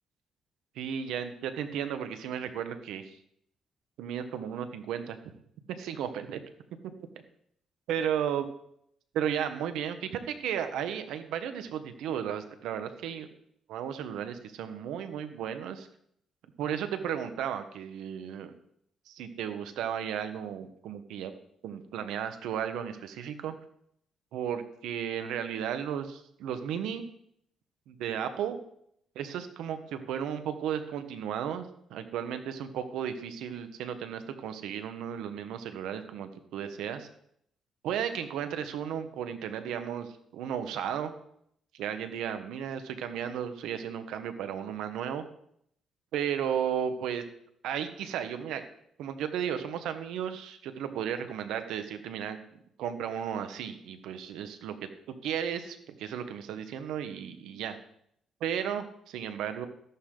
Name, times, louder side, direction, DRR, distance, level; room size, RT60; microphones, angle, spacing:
voice 1, 0.7-3.2 4.0-5.2 5.8-6.4 7.9-8.5 9.1-13.3 13.7-15.9 16.6-18.5 19.1-21.3 21.6-23.5 24.3-27.0 27.9-28.6 29.1-37.1 37.8-41.1 41.7-45.2 46.1-47.2 47.6-48.6 49.0-52.4 52.8-54.8 55.1-57.8 58.4-59.7, right 9 dB, 85° right, 9 dB, 1.3 m, -34 dB
13.5 x 11.5 x 3.9 m, 0.71 s
cardioid pair, 90°, 0 cm